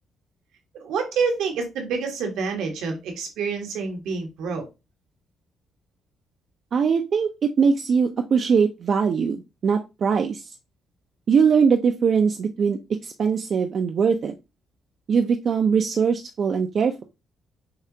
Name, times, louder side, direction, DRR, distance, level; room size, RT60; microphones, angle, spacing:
voice 1, 0.7-4.7, right 5 dB, 85° right, 3 dB, 1.3 m, -27 dB
voice 2, 6.7-7.3 7.6-10.4 11.3-12.8 13.0-14.3 15.1-17.0, right 6 dB, 55° right, 5 dB, 0.5 m, -21 dB
6.5 x 2.4 x 2.8 m, 0.25 s
cardioid pair, 90°, 0 cm